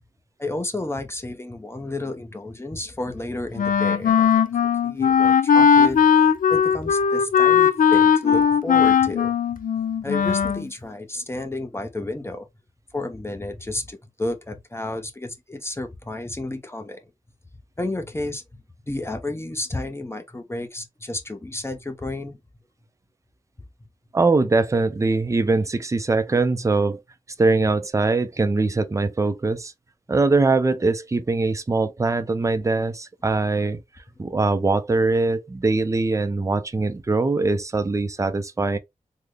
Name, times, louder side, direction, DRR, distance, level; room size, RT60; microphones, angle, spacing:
voice 1, 0.4-4.5 4.8-6.1 6.5-9.3 10.0-12.5 12.9-17.0 17.8-18.4 18.9-22.4, left 2 dB, 20° left, 0.6 m, -31 dB
Wind instrument woodwind instrument, 3.6-10.7, left 7 dB, 80° left, 0.4 m, -18 dB
voice 2, 24.1-27.0 27.4-29.7 30.1-33.8 34.2-38.8, right 3 dB, 20° right, 0.4 m, -22 dB
3.5 x 2.1 x 3.2 m
wide cardioid pair, 80°, 14 cm